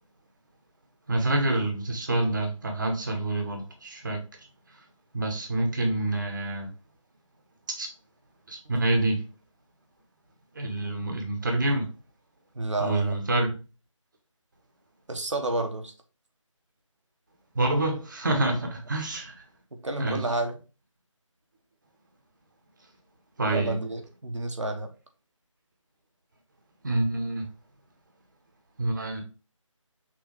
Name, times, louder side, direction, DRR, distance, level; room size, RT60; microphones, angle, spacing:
voice 1, 1.1-4.2 5.1-6.7 7.7-7.9 8.5-9.2 10.5-11.8 12.8-13.6 17.5-19.3 20.0-20.2 23.4-23.8 26.8-27.4 28.8-29.2, right 2 dB, 35° right, 1.1 m, -27 dB
voice 2, 12.5-13.2 15.1-15.9 19.7-20.6 23.5-24.9, right 2 dB, 65° right, 1.1 m, -30 dB
6.2 x 2.8 x 3.1 m
figure-of-eight pair, 160°, 17 cm